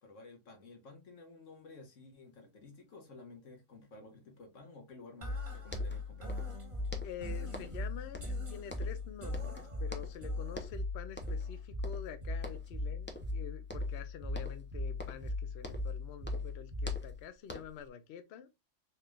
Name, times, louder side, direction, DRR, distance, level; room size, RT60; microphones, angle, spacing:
voice 1, 0.0-6.4, left 3 dB, 90° left, 1.5 m, -53 dB
sound 1, 5.2-17.2, left 2 dB, 30° right, 1.0 m, -39 dB
sound 2, 5.4-5.5 5.7-6.6 6.9-7.9 8.1-9.1 9.3-10.2 10.5-10.8 11.2-11.5 11.8-12.7 13.1-13.4 13.7-14.0 14.3-16.0 16.2-17.9, left 3 dB, 20° left, 0.3 m, -46 dB
voice 2, 7.0-18.5, left 8 dB, 65° left, 0.8 m, -48 dB
4.4 x 3.2 x 2.3 m
omnidirectional pair, 1.3 m